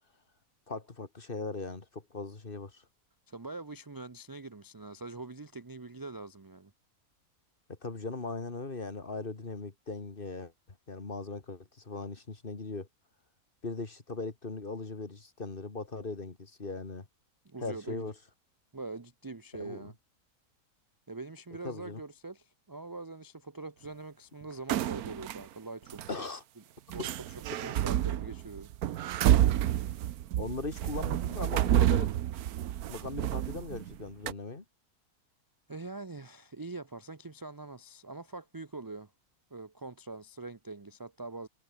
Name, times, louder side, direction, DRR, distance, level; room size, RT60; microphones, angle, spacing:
voice 1, 0.7-2.8 7.7-12.9 13.6-17.1 17.6-18.1 19.5-19.9 21.6-22.0 26.1-26.4 30.3-32.1 32.9-34.6, left 3 dB, 35° left, 2.3 m, -39 dB
voice 2, 3.3-6.7 17.4-18.1 18.7-19.9 21.1-26.0 26.6-26.7 26.9-27.1 27.3-28.7 35.7-39.1 39.5-41.5, right 3 dB, 30° right, 0.4 m, -43 dB
sound 1, 24.7-25.4 25.9-26.1 26.9-34.0 34.3-34.4, right 12 dB, 80° right, 1.2 m, -29 dB
omnidirectional pair, 1.6 m